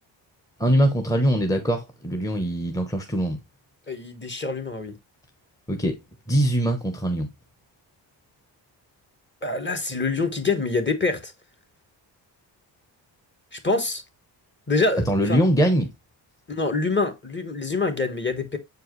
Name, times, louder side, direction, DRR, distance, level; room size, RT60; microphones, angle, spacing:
voice 1, 0.6-3.4 5.7-6.0 6.3-7.3 15.0-15.9, equal, 10° left, 0.9 m, -22 dB
voice 2, 3.9-5.0 9.4-11.3 13.5-14.0 14.7-15.4 16.5-18.6, left 3 dB, 25° left, 1.3 m, -25 dB
7.2 x 4.6 x 3.1 m
cardioid pair, 85°, 44 cm